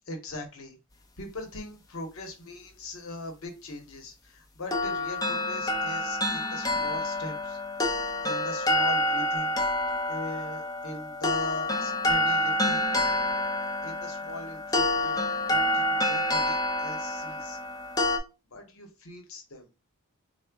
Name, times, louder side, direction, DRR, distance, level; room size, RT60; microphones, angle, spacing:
voice 1, 0.1-0.8 1.2-7.6 8.2-9.6 10.1-12.8 13.8-15.2 15.5-17.6 18.5-19.7, left 1 dB, 90° left, 4 dB, 0.8 m, -40 dB
sound 1, 4.7-18.2, left 1 dB, 20° left, 0.5 m, -28 dB
3.7 x 2.1 x 3.4 m, 0.29 s
head